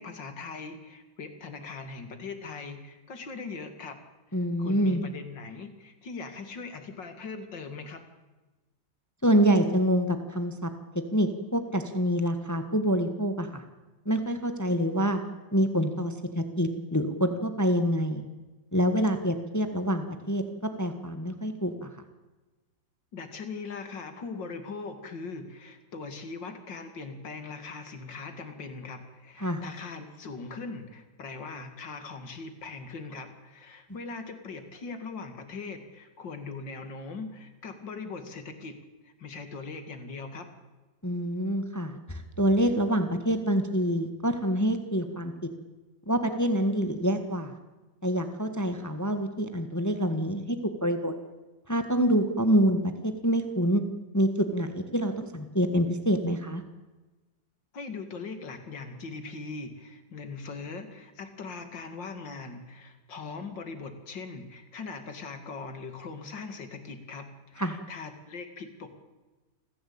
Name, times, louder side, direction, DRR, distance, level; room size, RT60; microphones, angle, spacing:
voice 1, 0.0-4.0 4.3-8.0 23.1-38.8 39.0-40.5 57.7-68.9, left 4 dB, 70° left, 8 dB, 3.0 m, -40 dB
voice 2, 4.3-5.0 9.2-10.7 11.1-13.6 14.0-15.2 15.5-18.2 18.7-20.4 20.8-21.9 29.4-29.6 41.0-45.3 46.1-47.5 48.0-50.6 50.8-51.1 51.7-53.8 54.1-56.6 67.6-67.7, equal, 10° left, 7 dB, 1.4 m, -26 dB
27.5 x 15.0 x 8.7 m, 1.2 s
omnidirectional pair, 2.1 m